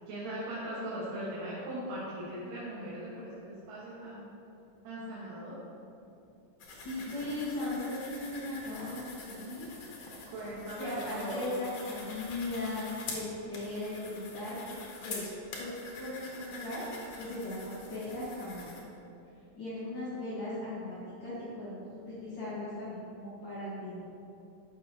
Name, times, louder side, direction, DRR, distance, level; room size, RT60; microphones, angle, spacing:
voice 1, 0.1-4.2 4.8-5.5 10.3-11.5, right 1 dB, 75° right, -9 dB, 3.0 m, -39 dB
sound 1, 6.6-18.8, left 3 dB, 70° left, 2.7 m, -45 dB
voice 2, 6.7-9.7 10.8-15.3 15.6-16.9 17.2-18.8 19.6-24.1, left 1 dB, 45° left, -11 dB, 1.8 m, -38 dB
11.5 x 7.0 x 2.9 m, 2.7 s
omnidirectional pair, 3.9 m